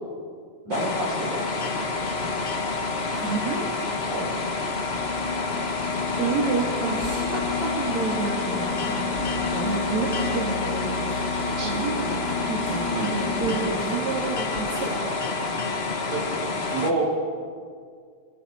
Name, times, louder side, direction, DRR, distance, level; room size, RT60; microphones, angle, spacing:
sound 1, 0.7-16.9, left 3 dB, 75° left, 0.5 m, -28 dB
voice 1, 0.7-1.9 4.1-4.4 11.6-11.8 12.9-13.6 16.1-16.2 16.7-17.1, right 2 dB, 85° right, -2 dB, 5.5 m, -29 dB
sound 2, 2.0-14.8, left 4 dB, 40° left, 2.0 m, -35 dB
voice 2, 3.1-3.8 6.2-11.2 11.6-15.5, right 4 dB, 70° right, -3 dB, 3.8 m, -30 dB
26.5 x 21.5 x 4.7 m, 2.1 s
omnidirectional pair, 3.3 m